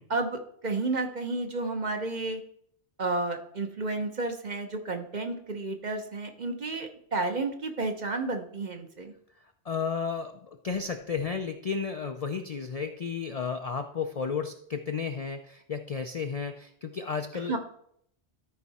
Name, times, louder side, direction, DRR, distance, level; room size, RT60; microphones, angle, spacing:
voice 1, 0.1-2.4 3.0-9.1 17.5-17.6, right 3 dB, 45° right, 5 dB, 1.0 m, -31 dB
voice 2, 9.4-17.6, left 5 dB, 50° left, 6 dB, 0.4 m, -33 dB
13.0 x 4.7 x 4.1 m, 0.68 s
omnidirectional pair, 1.1 m